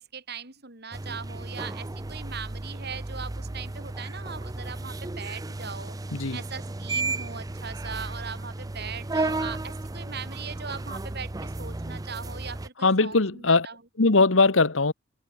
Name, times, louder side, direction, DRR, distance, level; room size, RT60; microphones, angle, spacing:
voice 1, 0.0-6.0 6.3-13.8, right 6 dB, 55° right, 4.3 m, -40 dB
sound 1, 0.9-12.7, right 2 dB, 20° right, 0.5 m, -34 dB
voice 2, 12.8-13.7 14.0-14.9, left 3 dB, 80° left, 1.5 m, -20 dB
head